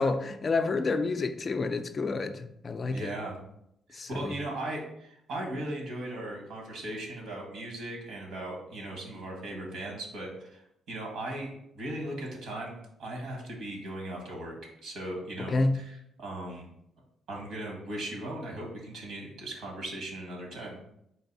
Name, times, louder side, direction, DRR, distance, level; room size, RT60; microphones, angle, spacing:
voice 1, 0.0-3.1 3.9-4.4 15.5-15.8, left 3 dB, 40° left, 0.3 m, -29 dB
voice 2, 2.9-3.3 4.1-14.5 14.8-16.7 17.3-20.8, right 1 dB, 75° right, 1.4 m, -38 dB
4.0 x 2.6 x 4.0 m
cardioid pair, 90°, 0 cm